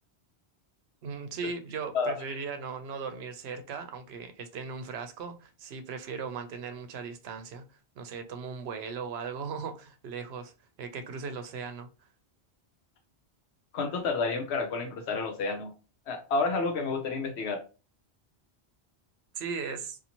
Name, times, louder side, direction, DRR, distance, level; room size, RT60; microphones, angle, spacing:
voice 1, 1.0-7.6 8.0-10.5 10.8-11.9 19.4-20.0, right 5 dB, 75° right, 0.8 m, -38 dB
voice 2, 1.9-2.4 13.7-15.7 16.1-17.6, left 4 dB, 80° left, 0.9 m, -30 dB
2.6 x 2.5 x 2.8 m
omnidirectional pair, 1.1 m